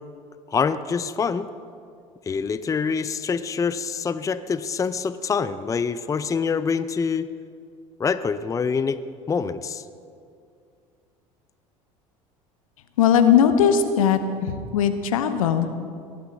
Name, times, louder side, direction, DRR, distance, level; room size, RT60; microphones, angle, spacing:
voice 1, 0.5-1.5 2.3-7.3 8.0-9.0 9.3-9.8, left 5 dB, 20° left, 14 dB, 0.5 m, -25 dB
voice 2, 13.0-15.7, left 8 dB, 80° left, 9 dB, 0.9 m, -19 dB
18.0 x 12.5 x 3.9 m, 2.3 s
hypercardioid pair, 70°, 17 cm